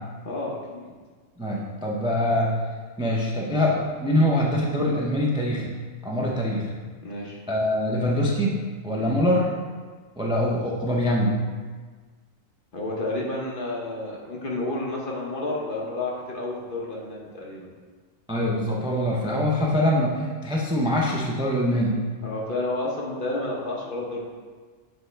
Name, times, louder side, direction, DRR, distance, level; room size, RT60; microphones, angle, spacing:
voice 1, 0.2-0.9 7.0-7.4 8.9-9.2 12.7-17.7 22.2-24.3, left 2 dB, 45° left, -3 dB, 1.0 m, -31 dB
voice 2, 1.4-2.5 3.0-5.7 6.0-6.7 7.5-8.6 8.8-9.5 10.2-11.3 18.3-21.9, left 1 dB, 5° right, -3 dB, 0.4 m, -23 dB
6.7 x 4.2 x 3.3 m, 1.5 s
omnidirectional pair, 1.3 m